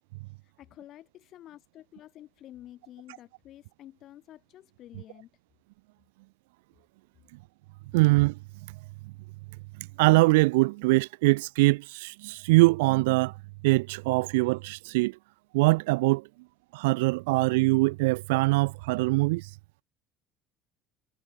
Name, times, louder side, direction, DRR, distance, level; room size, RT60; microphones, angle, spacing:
voice 1, 0.4-5.3, left 13 dB, 60° left, 7.8 m, -50 dB
voice 2, 7.9-8.3 10.0-13.3 13.6-15.1 15.5-16.2 16.7-19.5, right 23 dB, 80° right, 0.5 m, -23 dB
hypercardioid pair, 75°, 0 cm